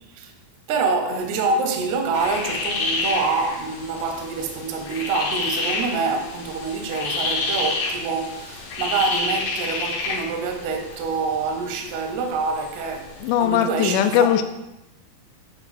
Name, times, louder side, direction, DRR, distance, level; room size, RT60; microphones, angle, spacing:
voice 1, 0.7-14.3, right 4 dB, 75° right, 1.7 m, -26 dB
sound 1, 2.1-13.4, left 3 dB, 65° left, 2.0 m, -29 dB
voice 2, 13.2-14.4, left 9 dB, 85° left, 1.9 m, -19 dB
7.7 x 3.4 x 4.1 m
omnidirectional pair, 4.2 m